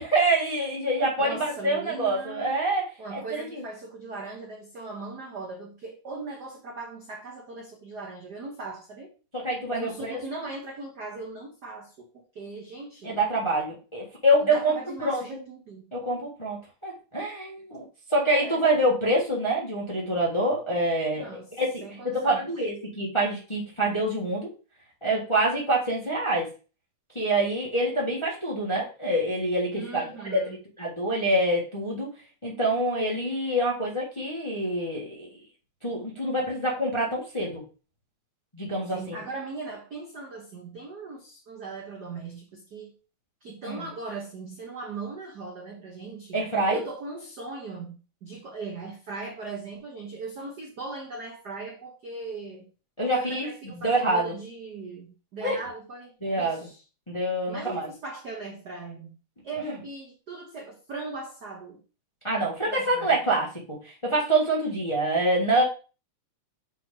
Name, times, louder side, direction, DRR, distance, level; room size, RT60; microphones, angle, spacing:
voice 1, 0.0-2.8 3.1-3.6 9.3-10.2 13.0-14.8 15.0-15.4 15.9-17.8 18.1-21.8 22.1-24.5 25.0-26.5 27.1-30.0 30.3-30.4 30.8-32.1 32.4-35.4 35.8-37.6 38.5-39.2 43.7-43.9 46.3-46.8 53.0-53.5 53.8-54.3 55.4-55.6 56.2-56.7 57.1-57.9 59.6-59.7 62.2-65.6, right 1 dB, 15° left, 0.9 m, -26 dB
voice 2, 1.2-2.6 3.0-9.1 9.7-13.2 14.4-15.9 18.3-18.7 21.2-21.5 21.8-22.5 29.7-30.6 38.9-42.9 43.4-52.7 53.1-56.8 57.5-59.2 59.4-61.8 62.7-63.2, right 3 dB, 75° right, 0.9 m, -39 dB
7.1 x 4.2 x 3.8 m
omnidirectional pair, 3.5 m